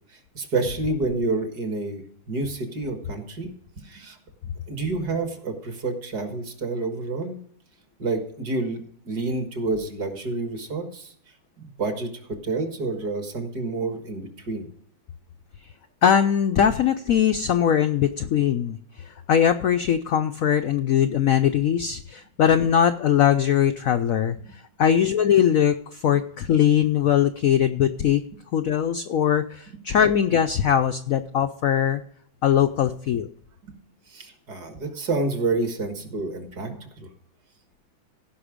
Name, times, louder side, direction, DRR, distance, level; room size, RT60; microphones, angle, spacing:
voice 1, 0.1-3.5 3.8-4.2 4.7-7.4 8.0-11.1 11.6-14.7 33.6-33.8 34.1-37.1, right 3 dB, 55° right, 5 dB, 2.1 m, -29 dB
voice 2, 16.0-28.2 28.5-32.0 32.4-33.3, left 9 dB, 85° left, 8 dB, 0.7 m, -21 dB
16.0 x 5.6 x 5.0 m, 0.64 s
omnidirectional pair, 2.2 m